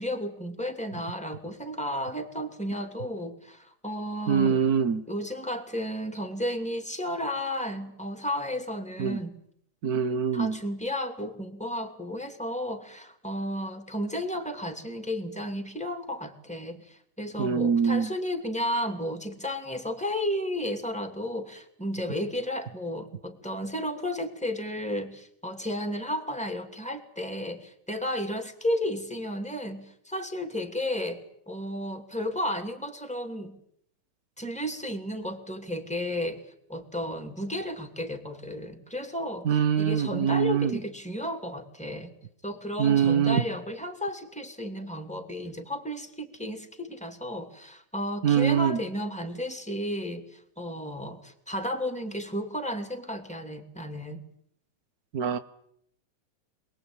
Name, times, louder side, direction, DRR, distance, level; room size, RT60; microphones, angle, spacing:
voice 1, 0.0-4.6 5.1-9.3 10.3-33.6 34.4-36.4 36.7-42.1 42.4-54.2, left 1 dB, 5° left, 2.1 m, -33 dB
voice 2, 4.3-5.0 9.0-9.2 9.8-10.6 17.4-18.1 39.4-40.8 42.8-43.5 48.2-48.8 55.1-55.4, right 7 dB, 80° right, 0.8 m, -24 dB
27.0 x 20.5 x 8.9 m
omnidirectional pair, 3.5 m